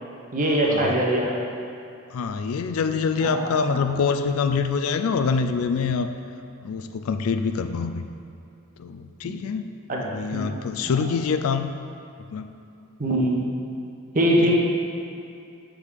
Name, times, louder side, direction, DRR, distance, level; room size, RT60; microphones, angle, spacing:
voice 1, 0.3-1.3 3.2-3.4 3.7-3.8 9.2-9.4 9.9-10.0 10.3-10.5 10.9-11.0 13.0-13.4 14.1-14.5, right 1 dB, 40° right, -2 dB, 0.9 m, -22 dB
voice 2, 2.1-6.1 6.6-8.0 8.8-9.7 10.0-11.7 12.3-12.5 14.4-14.5, left 5 dB, 85° left, 8 dB, 0.4 m, -25 dB
6.7 x 3.7 x 4.7 m, 2.6 s
head